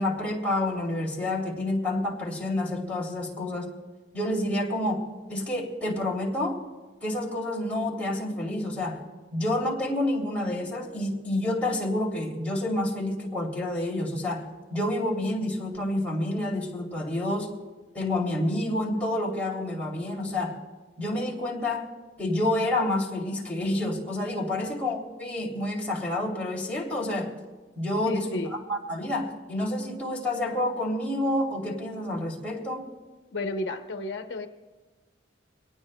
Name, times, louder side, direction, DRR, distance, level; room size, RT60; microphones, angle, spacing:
voice 1, 0.0-3.7 4.1-6.6 7.0-9.0 9.3-14.4 14.7-17.5 17.9-20.6 21.0-21.9 22.2-27.3 27.8-32.9, left 1 dB, 10° left, -3 dB, 3.0 m, -29 dB
voice 2, 28.1-28.5 33.3-34.5, left 2 dB, 70° left, 5 dB, 0.8 m, -32 dB
23.5 x 18.5 x 2.2 m, 1.2 s
head